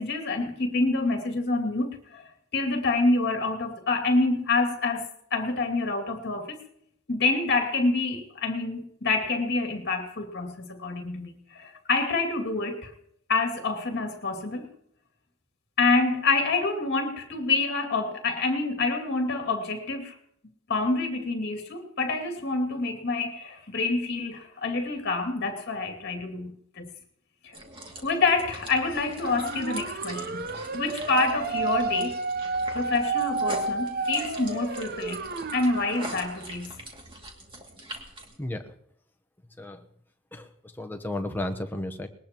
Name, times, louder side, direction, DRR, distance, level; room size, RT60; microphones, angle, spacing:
voice 1, 0.0-2.2 2.5-6.6 7.1-12.9 13.3-14.7 15.8-20.1 20.7-26.9 27.4-27.6 28.0-30.5 30.7-32.2 32.7-35.2 35.5-36.7, left 3 dB, 50° left, 4 dB, 2.4 m, -27 dB
sound 1, 27.5-38.4, right 1 dB, 25° right, 2.5 m, -43 dB
sound 2, 29.2-36.4, right 4 dB, 45° right, 0.7 m, -31 dB
voice 2, 38.4-38.7 39.6-39.9 40.3-42.1, left 1 dB, 10° left, 5 dB, 0.9 m, -33 dB
20.5 x 19.0 x 3.0 m, 0.72 s
head